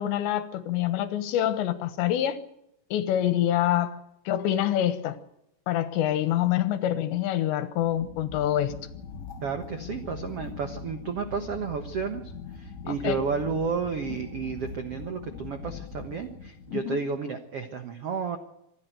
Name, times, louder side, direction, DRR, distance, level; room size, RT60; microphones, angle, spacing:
voice 1, 0.0-2.4 2.9-5.2 5.7-8.7 12.9-13.2 16.7-17.0, left 12 dB, 85° left, 3.5 m, -26 dB
sound 1, 7.8-16.9, left 5 dB, 60° left, 2.0 m, -41 dB
voice 2, 9.4-18.4, right 5 dB, 85° right, 1.3 m, -32 dB
26.5 x 11.0 x 9.1 m
omnidirectional pair, 5.0 m